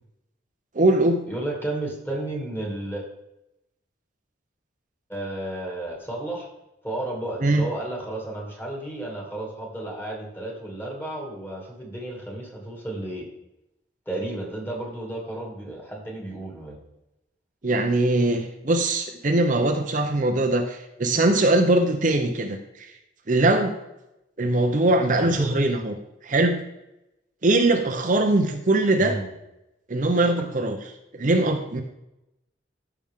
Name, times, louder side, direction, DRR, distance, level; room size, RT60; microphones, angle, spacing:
voice 1, 0.7-1.2 7.4-7.6 17.6-22.9 23.3-23.8 24.4-25.9 26.2-26.6 27.4-29.1 29.9-30.8 31.1-31.8, right 2 dB, 45° right, 4 dB, 0.8 m, -21 dB
voice 2, 1.3-3.0 5.1-6.5 6.8-13.3 14.1-16.8 25.1-25.6 29.0-29.3, right 1 dB, 10° left, -1 dB, 2.4 m, -32 dB
14.5 x 6.0 x 3.7 m, 0.90 s
head